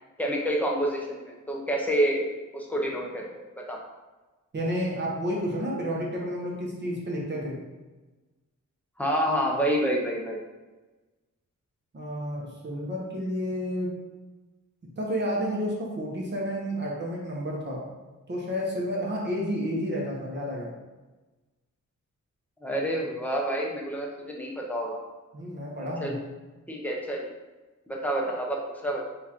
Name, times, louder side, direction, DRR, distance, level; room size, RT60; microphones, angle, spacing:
voice 1, 0.2-2.3 2.5-3.2 3.6-3.8 9.0-10.4 22.6-25.0 25.8-26.2 26.7-27.3 27.9-29.0, right 1 dB, 5° left, -2 dB, 0.6 m, -28 dB
voice 2, 4.5-7.6 11.9-13.9 15.0-17.8 18.3-20.7 25.3-26.1, equal, 35° right, -3 dB, 0.8 m, -30 dB
6.2 x 2.4 x 2.9 m, 1.2 s
wide cardioid pair, 170°, 32 cm